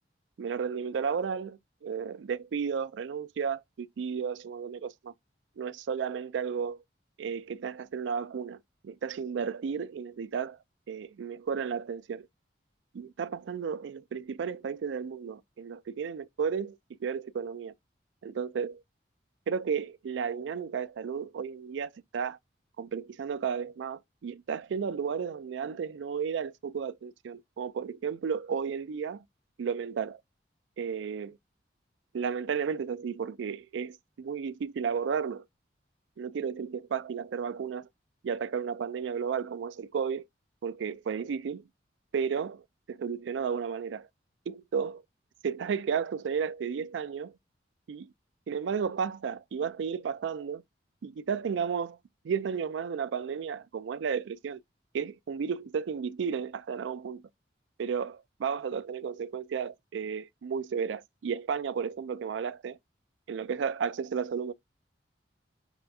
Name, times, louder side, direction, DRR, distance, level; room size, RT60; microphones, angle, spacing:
voice 1, 0.4-5.1 5.6-6.8 7.2-10.6 10.9-12.3 12.9-17.7 18.2-18.8 19.5-22.4 22.8-29.2 29.6-30.2 30.8-31.4 32.1-35.4 36.2-37.9 38.2-40.2 40.6-41.6 42.1-44.1 44.5-45.0 45.4-47.4 47.9-48.1 48.5-50.6 51.0-52.0 52.2-54.6 54.9-57.2 57.8-62.8 63.3-64.5, right 6 dB, 75° right, 0.3 m, -33 dB
5.8 x 3.3 x 2.6 m
head